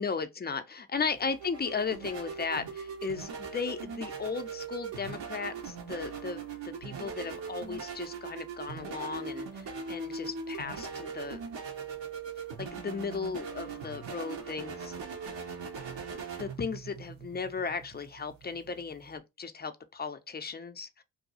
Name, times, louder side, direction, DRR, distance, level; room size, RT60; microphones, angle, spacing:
voice 1, 0.0-11.4 12.6-15.0 16.4-21.0, left 5 dB, 20° left, 0.6 m, -36 dB
sound 1, 0.9-19.2, right 5 dB, 60° right, 1.2 m, -40 dB
2.7 x 2.3 x 4.1 m
supercardioid pair, 45°, 49 cm